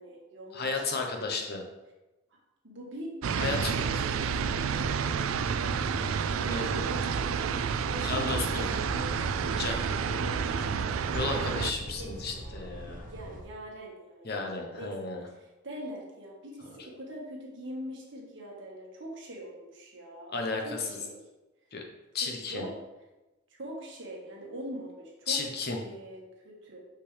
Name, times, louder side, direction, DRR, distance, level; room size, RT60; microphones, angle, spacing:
voice 1, 0.0-0.9 1.3-1.4 2.6-3.1 3.4-3.5 3.8-4.9 6.4-7.4 7.8-10.3 12.0-12.6 13.0-20.3 20.6-21.2 22.2-22.7 23.6-25.4 25.8-26.8, right 1 dB, 65° right, -2 dB, 1.6 m, -43 dB
voice 2, 0.5-1.6 3.4-3.7 6.4-6.7 8.0-8.7 9.6-9.8 11.1-13.1 14.2-15.2 20.3-20.9 21.7-21.8 22.1-22.7 25.3-25.8, left 4 dB, 50° left, 2 dB, 1.0 m, -33 dB
sound 1, 3.2-11.7, right 6 dB, 80° right, 0.4 m, -30 dB
sound 2, 3.3-13.4, equal, 45° right, 1.1 m, -41 dB
6.0 x 5.8 x 3.4 m, 1.1 s
head